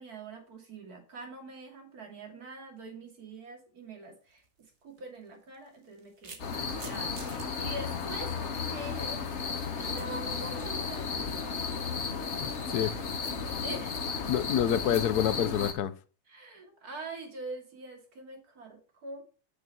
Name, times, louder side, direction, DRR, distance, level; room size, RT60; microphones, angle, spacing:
voice 1, 0.0-8.3 8.7-9.2 9.8-14.0 16.3-19.2, right 2 dB, 70° right, 2.9 m, -44 dB
sound 1, 4.3-4.5 5.5-7.5, right 4 dB, 45° right, 1.5 m, -46 dB
sound 2, 6.4-15.7, left 5 dB, 50° left, 1.3 m, -34 dB
voice 2, 12.4-12.9 14.3-15.9, left 10 dB, 75° left, 1.2 m, -27 dB
8.5 x 6.8 x 4.5 m
omnidirectional pair, 1.7 m